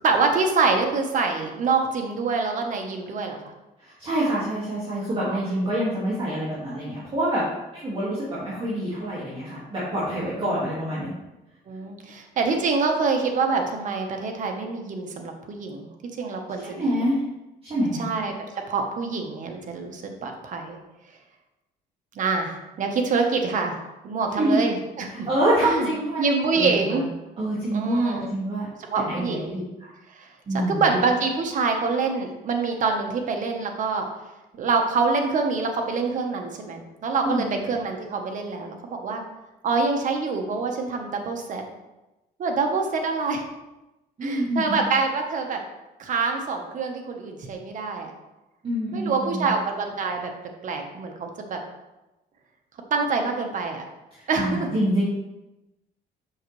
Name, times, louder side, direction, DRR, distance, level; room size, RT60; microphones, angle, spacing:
voice 1, 0.0-3.4 5.2-5.4 10.1-10.5 11.7-16.9 18.0-18.3 18.7-20.8 22.1-23.7 24.0-25.3 25.6-25.9 26.2-27.0 27.7-28.3 28.9-29.5 30.1-30.3 30.7-34.1 34.5-39.2 39.6-41.6 42.4-43.5 44.2-45.6 46.0-48.1 48.9-50.3 50.6-51.6 52.9-53.8 54.3-54.7, right 4 dB, 50° right, 3 dB, 1.2 m, -26 dB
voice 2, 3.8-7.4 7.7-11.1 16.6-17.2 17.6-18.1 24.4-24.6 25.3-26.2 26.5-27.0 27.4-28.7 29.0-29.9 30.5-30.9 37.2-37.6 44.2-44.9 48.6-49.5 54.1-55.0, right 1 dB, 35° right, -8 dB, 2.1 m, -26 dB
7.9 x 5.7 x 3.2 m, 1.0 s
cardioid pair, 110°, 17 cm